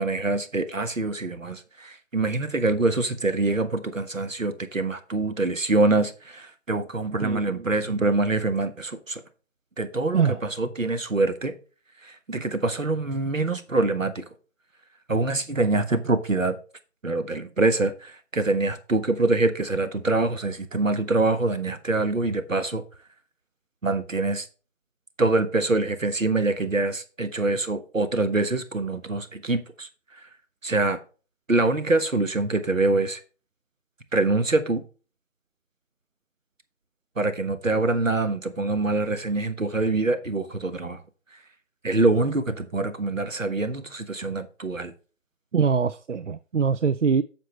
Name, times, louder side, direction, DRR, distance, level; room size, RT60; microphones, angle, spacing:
voice 1, 0.0-9.2 9.8-11.5 12.0-14.2 15.1-16.6 17.0-22.8 23.8-24.5 25.2-29.9 30.6-31.0 31.5-33.2 34.1-34.8 37.2-41.0 41.8-44.9, right 2 dB, 85° right, 1.5 m, -25 dB
voice 2, 7.2-7.6 8.0-8.1 10.1-10.4 45.5-47.2, right 6 dB, 70° right, 0.5 m, -23 dB
9.2 x 6.8 x 3.2 m
figure-of-eight pair, 170°, 38 cm